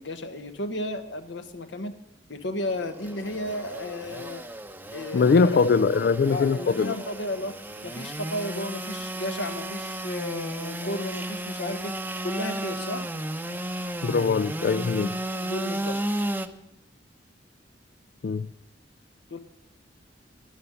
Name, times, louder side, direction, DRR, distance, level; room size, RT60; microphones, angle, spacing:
voice 1, 0.0-1.9 2.3-4.4 4.9-5.5 6.3-7.6 7.8-11.9 12.2-13.1 15.4-16.0 19.3-19.4, left 1 dB, 80° left, 8 dB, 1.3 m, -33 dB
Engine / Sawing, 2.7-16.5, right 1 dB, 10° right, 0.7 m, -34 dB
voice 2, 5.1-7.0 14.0-15.1 18.2-18.5, left 5 dB, 60° left, 14 dB, 0.3 m, -22 dB
11.0 x 10.5 x 6.9 m, 0.92 s
head